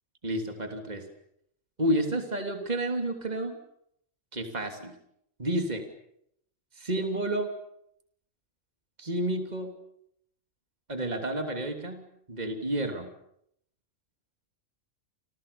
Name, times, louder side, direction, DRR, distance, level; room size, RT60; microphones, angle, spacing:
voice 1, 0.2-1.0 1.8-3.6 4.3-4.9 5.4-5.8 6.8-7.5 9.0-9.7 10.9-12.0 12.3-13.1, right 1 dB, 30° right, 5 dB, 3.3 m, -30 dB
30.0 x 27.0 x 7.0 m, 0.74 s
omnidirectional pair, 1.4 m